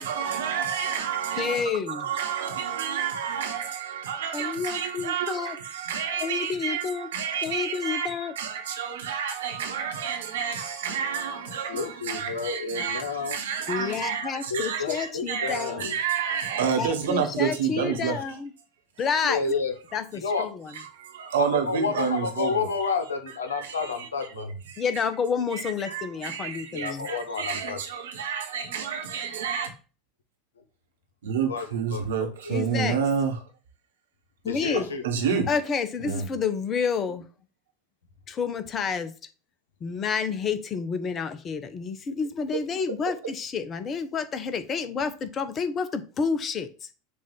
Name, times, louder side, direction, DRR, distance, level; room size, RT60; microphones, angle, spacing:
voice 1, 0.0-18.2 20.3-20.4 20.7-22.7 23.5-24.1 24.4-24.8 25.5-29.7 31.2-33.5 35.0-35.5 36.0-36.2, right 7 dB, 70° right, 1.3 m, -30 dB
voice 2, 1.4-2.1 4.3-5.6 6.2-7.1 7.4-8.3 13.7-15.9 16.8-18.5 19.0-19.4 19.9-20.7 24.8-27.1 32.5-33.0 34.4-34.9 35.5-37.2 38.3-39.1 39.8-46.9, left 6 dB, 35° left, 0.9 m, -29 dB
voice 3, 11.7-13.4 14.5-16.0 19.2-19.7 20.2-20.5 21.4-24.5 26.7-27.8 31.5-32.0 32.4-32.5 34.4-35.0, left 4 dB, 75° left, 1.1 m, -30 dB
6.7 x 2.7 x 5.3 m
figure-of-eight pair, 80°, 0 cm